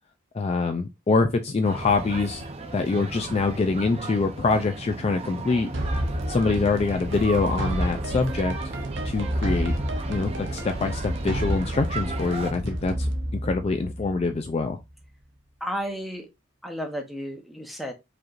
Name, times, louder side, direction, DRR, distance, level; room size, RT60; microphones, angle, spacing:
voice 1, 0.3-2.4 2.7-5.7 6.3-8.5 9.0-9.7 10.1-14.8, left 3 dB, 30° left, 0.3 m, -25 dB
sound 1, 1.6-12.5, right 3 dB, 30° right, 0.6 m, -35 dB
sound 2, 5.7-14.6, right 1 dB, 65° right, 0.7 m, -30 dB
voice 2, 15.6-16.3 16.6-17.9, equal, ahead, 0.8 m, -32 dB
4.9 x 3.0 x 2.4 m
head